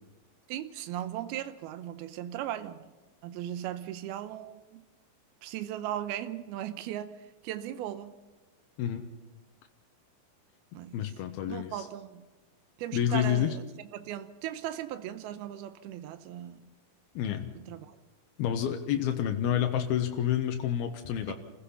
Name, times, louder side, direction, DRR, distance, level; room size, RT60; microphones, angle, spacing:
voice 1, 0.5-2.9 3.2-4.8 5.4-7.2 7.4-8.1 10.7-11.0 11.5-12.2 12.8-13.6 13.9-16.7 17.6-17.9 21.3-21.4, right 11 dB, 90° right, 2.7 m, -37 dB
voice 2, 10.9-11.9 12.9-13.6 17.2-17.5 18.4-21.3, left 10 dB, 90° left, 3.0 m, -29 dB
28.5 x 16.0 x 5.7 m
omnidirectional pair, 4.3 m